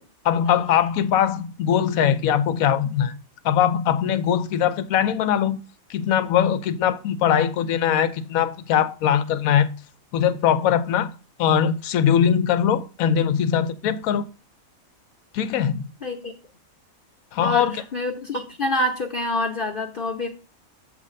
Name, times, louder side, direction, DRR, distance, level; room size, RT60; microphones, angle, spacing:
voice 1, 0.2-3.2 3.4-5.6 5.9-9.7 10.1-11.1 11.4-14.3 15.3-15.8 17.3-17.8, left 9 dB, 80° left, 1.1 m, -21 dB
voice 2, 16.0-16.3 17.4-20.3, left 1 dB, 45° left, 0.9 m, -26 dB
7.7 x 3.3 x 6.3 m
omnidirectional pair, 1.5 m